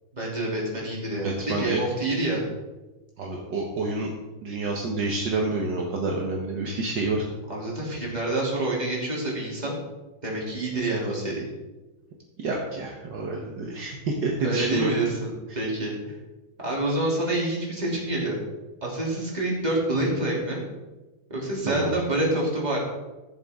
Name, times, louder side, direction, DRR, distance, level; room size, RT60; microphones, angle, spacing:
voice 1, 0.1-2.4 7.5-9.7 10.2-11.4 14.4-16.0 16.6-18.4 18.8-20.6 21.3-22.8, right 1 dB, 20° right, -4 dB, 3.0 m, -27 dB
voice 2, 1.2-1.8 3.2-4.1 4.4-7.3 12.4-14.9 15.5-15.6 21.7-21.9, right 3 dB, 65° right, -1 dB, 1.8 m, -28 dB
16.0 x 7.1 x 3.6 m, 1.1 s
omnidirectional pair, 2.2 m